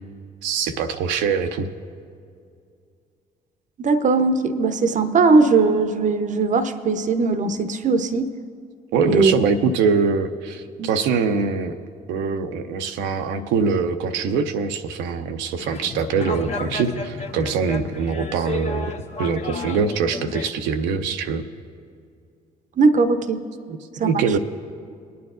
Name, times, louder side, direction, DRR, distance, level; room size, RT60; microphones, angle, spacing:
voice 1, 0.4-1.7 8.9-11.8 12.1-18.9 19.2-21.4 23.7-23.8 24.0-24.4, right 5 dB, 75° right, 7 dB, 0.6 m, -23 dB
voice 2, 3.8-8.3 9.0-9.3 10.8-10.9 22.8-23.4 24.0-24.1, right 4 dB, 40° right, 10 dB, 0.7 m, -19 dB
sound 1, 15.6-20.5, left 4 dB, 35° left, 0.9 m, -33 dB
20.5 x 9.4 x 2.5 m, 2.3 s
hypercardioid pair, 50°, 19 cm